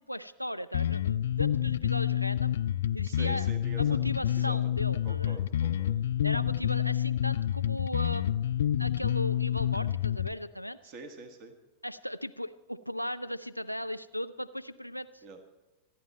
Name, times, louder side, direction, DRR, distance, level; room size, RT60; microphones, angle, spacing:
voice 1, 0.1-2.6 2.9-3.5 3.8-5.4 6.2-8.4 8.8-10.8 11.8-15.2, equal, 90° right, 16 dB, 0.4 m, -37 dB
Bass guitar, 0.7-10.3, left 11 dB, 60° left, 0.4 m, -28 dB
voice 2, 3.0-4.0 4.3-4.6 5.0-6.0 10.8-11.5 15.2-15.4, right 3 dB, 40° right, 7 dB, 1.6 m, -46 dB
26.0 x 10.0 x 4.3 m, 1.1 s
figure-of-eight pair, 90°, 0 cm